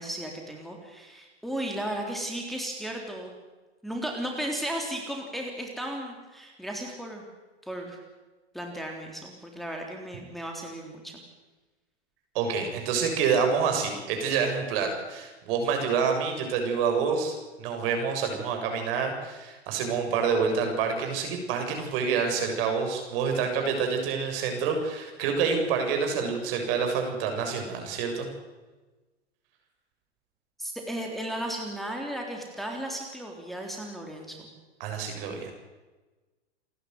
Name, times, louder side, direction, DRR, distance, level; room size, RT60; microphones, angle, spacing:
voice 1, 0.0-3.3 3.8-7.2 7.6-8.0 8.5-11.2 30.6-34.4, right 1 dB, ahead, 0 dB, 3.6 m, -35 dB
voice 2, 12.3-28.3 34.8-35.5, right 5 dB, 55° right, 4 dB, 7.2 m, -27 dB
28.5 x 12.0 x 9.6 m, 1.2 s
hypercardioid pair, 115°, 34 cm